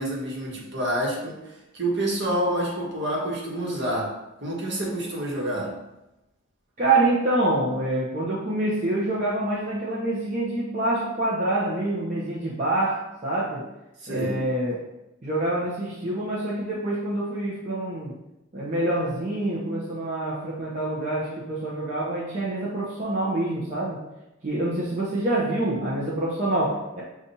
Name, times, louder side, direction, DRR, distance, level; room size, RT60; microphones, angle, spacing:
voice 1, 0.0-1.4 1.7-4.1 4.4-5.7 14.0-14.4, right 1 dB, 60° right, -3 dB, 1.2 m, -27 dB
voice 2, 6.8-13.7 14.1-14.8 15.2-18.2 18.5-24.0 24.4-27.0, right 2 dB, 40° right, -7 dB, 0.7 m, -26 dB
6.8 x 2.5 x 2.7 m, 0.94 s
head